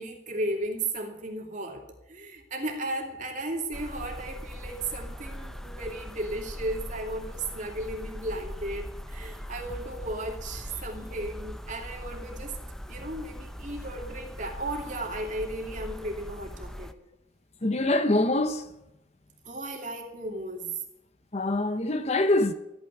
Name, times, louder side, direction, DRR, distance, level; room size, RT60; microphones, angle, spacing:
voice 1, 0.0-12.5 12.9-16.9 19.4-20.7, right 1 dB, 40° right, 2.6 m, -35 dB
sound 1, 3.7-16.9, equal, ahead, 0.6 m, -40 dB
voice 2, 17.6-18.7 21.3-22.5, left 2 dB, 35° left, 0.8 m, -24 dB
14.0 x 9.2 x 9.5 m
head